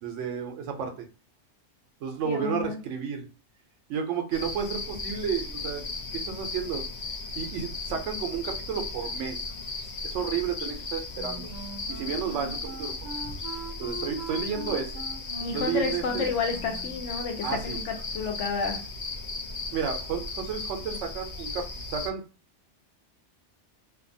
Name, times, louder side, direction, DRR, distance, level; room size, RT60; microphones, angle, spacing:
voice 1, 0.0-1.0 2.0-3.3 3.9-5.8 6.1-6.8 7.4-9.4 10.0-11.5 11.9-12.9 13.8-14.9 15.5-16.3 17.4-17.8 19.7-21.6 21.9-22.2, right 7 dB, 85° right, 4 dB, 0.9 m, -32 dB
voice 2, 2.2-2.8 15.4-18.8, left 5 dB, 80° left, 4 dB, 1.0 m, -30 dB
sound 1, 4.3-22.1, left 3 dB, 65° left, 0.4 m, -36 dB
Wind instrument woodwind instrument, 11.1-17.0, right 3 dB, 50° right, 0.6 m, -41 dB
2.7 x 2.2 x 2.6 m, 0.34 s
omnidirectional pair, 1.2 m